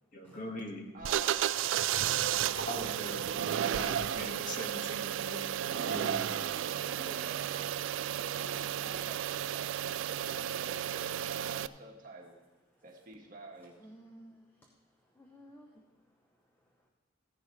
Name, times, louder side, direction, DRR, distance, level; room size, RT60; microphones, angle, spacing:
voice 1, 0.1-0.8 2.7-5.5 5.7-6.2, left 1 dB, 40° left, 1 dB, 1.7 m, -42 dB
voice 2, 0.9-4.0 5.9-12.3 12.8-13.9, right 2 dB, 40° right, 0 dB, 1.6 m, -49 dB
sound 1, 1.0-11.7, right 10 dB, 70° right, 0.3 m, -33 dB
voice 3, 5.7-6.3 6.8-7.4 8.8-9.3 13.8-14.7 15.0-15.8, equal, 10° left, 0 dB, 0.7 m, -51 dB
15.5 x 10.5 x 3.2 m, 1.2 s
head